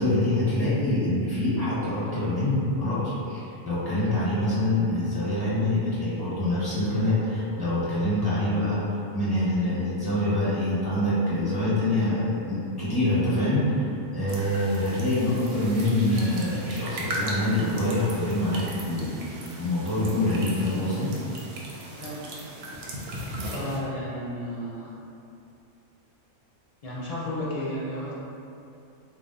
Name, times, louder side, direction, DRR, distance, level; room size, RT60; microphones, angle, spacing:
voice 1, 0.0-8.8 9.1-21.1, left 1 dB, 20° left, -11 dB, 0.9 m, -25 dB
sound 1, 14.3-23.8, right 1 dB, 65° right, 0.7 m, -37 dB
voice 2, 23.5-24.9 26.8-28.1, left 1 dB, 55° left, -8 dB, 0.4 m, -32 dB
2.6 x 2.1 x 3.8 m, 2.6 s
omnidirectional pair, 1.4 m